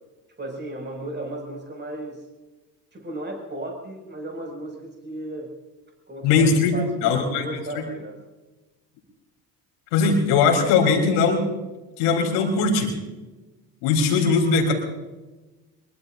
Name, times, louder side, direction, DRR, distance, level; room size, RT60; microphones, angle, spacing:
voice 1, 0.4-2.3 2.9-5.5 6.1-8.2, right 1 dB, 25° right, 1 dB, 5.8 m, -35 dB
voice 2, 6.2-7.5 9.9-11.5 12.0-12.9 13.8-14.7, left 4 dB, 85° left, 2 dB, 3.8 m, -20 dB
23.5 x 23.0 x 2.6 m, 1.1 s
hypercardioid pair, 65°, 46 cm